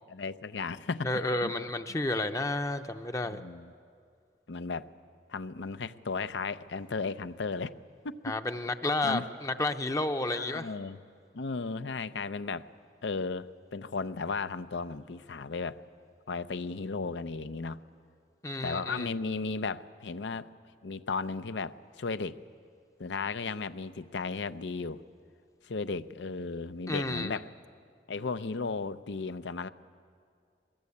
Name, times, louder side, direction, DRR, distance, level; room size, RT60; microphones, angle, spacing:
voice 1, 0.1-1.5 3.2-3.7 4.5-4.9 5.3-7.7 8.0-8.4 9.0-9.3 10.3-11.0 11.3-12.7 13.0-15.8 16.3-17.8 18.6-20.5 20.8-22.4 23.0-25.0 25.6-27.5 28.1-29.7, left 4 dB, 85° left, 12 dB, 0.7 m, -35 dB
voice 2, 1.0-3.4 8.2-10.7 18.4-19.1 26.9-27.4, left 2 dB, 20° left, 8 dB, 0.6 m, -31 dB
22.5 x 21.0 x 8.5 m, 2.2 s
head